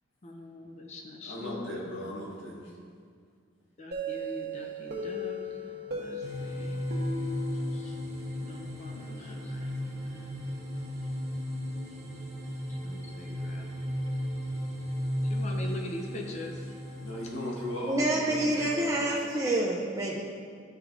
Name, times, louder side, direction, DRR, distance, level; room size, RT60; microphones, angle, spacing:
voice 1, 0.2-1.8 3.8-6.8 7.7-7.9 8.4-10.5 12.8-13.7 15.3-16.6, left 1 dB, 35° left, 1 dB, 0.5 m, -43 dB
voice 2, 1.2-2.7 17.0-19.2, left 1 dB, 75° left, -5 dB, 1.6 m, -37 dB
sound 1, 3.9-8.6, left 1 dB, 55° right, 1.0 m, -37 dB
sound 2, 6.2-18.6, equal, 35° right, 1.2 m, -35 dB
voice 3, 17.8-20.2, right 1 dB, 15° right, -5 dB, 0.5 m, -28 dB
11.0 x 4.6 x 2.5 m, 2.1 s
head